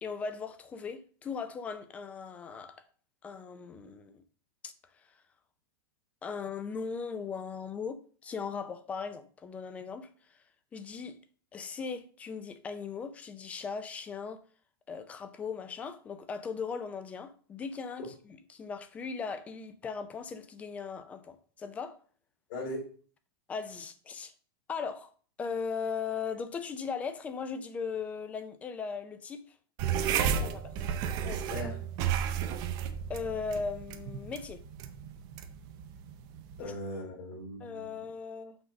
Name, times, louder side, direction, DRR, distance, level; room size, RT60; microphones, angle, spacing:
voice 1, 0.0-2.8 3.2-4.2 4.6-4.7 6.2-10.1 10.7-11.2 11.5-14.4 14.9-22.0 23.5-24.3 24.7-25.1 25.4-29.5 30.1-30.6 31.2-31.4 33.1-34.6 36.6-36.7 37.6-38.6, left 5 dB, 10° left, 0.4 m, -38 dB
voice 2, 22.5-22.8 30.1-30.5 31.5-31.8 36.6-37.9, left 1 dB, 50° left, 3.1 m, -39 dB
sound 1, 29.8-36.7, right 8 dB, 30° right, 0.6 m, -33 dB
6.0 x 3.9 x 6.2 m
supercardioid pair, 165°, 12 cm